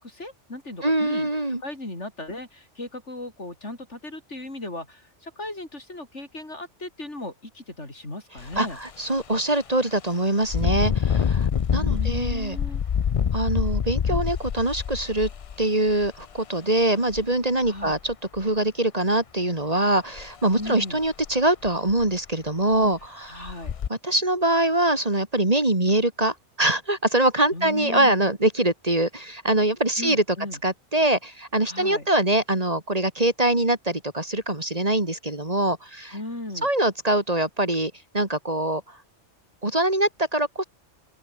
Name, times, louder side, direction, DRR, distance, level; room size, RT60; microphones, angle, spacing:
voice 1, 0.0-1.3 1.6-8.8 11.7-12.8 17.7-18.0 20.5-21.0 22.8-22.9 23.3-23.7 27.5-28.2 30.0-30.6 31.7-32.1 36.1-36.7, left 2 dB, 75° left, 6.5 m, -36 dB
voice 2, 0.8-1.6 8.6-12.6 13.3-15.3 15.6-23.5 23.9-30.2 30.6-36.2 36.6-39.0 39.6-40.6, right 1 dB, 30° right, 2.8 m, -23 dB
Engine, 8.4-8.6 9.1-9.2 10.4-16.2 17.1-17.2 17.7-18.4 20.2-20.3 20.7-20.8 21.2-21.3 21.7-22.2 22.7-22.8 23.4-23.9, left 8 dB, 55° left, 0.4 m, -26 dB
open air
omnidirectional pair, 1.2 m